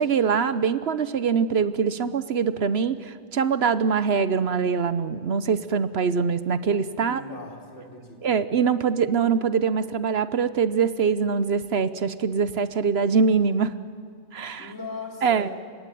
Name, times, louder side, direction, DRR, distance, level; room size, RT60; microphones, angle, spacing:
voice 1, 0.0-7.2 8.2-13.8 14.3-14.7 15.2-15.5, right 6 dB, 60° right, 14 dB, 1.0 m, -23 dB
voice 2, 7.0-8.4 14.6-15.5, left 2 dB, 70° left, 1 dB, 4.1 m, -39 dB
30.0 x 17.5 x 9.2 m, 2.2 s
omnidirectional pair, 1.3 m